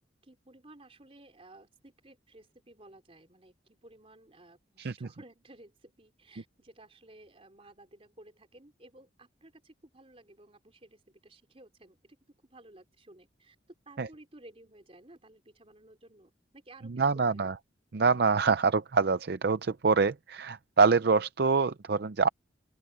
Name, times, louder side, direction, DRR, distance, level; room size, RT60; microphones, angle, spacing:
voice 1, 0.2-12.2 12.5-13.6 13.9-17.5, right 1 dB, 30° right, 3.8 m, -55 dB
voice 2, 4.8-5.1 14.0-14.1 16.9-17.5 17.9-22.3, right 4 dB, 55° right, 0.5 m, -25 dB
open air
head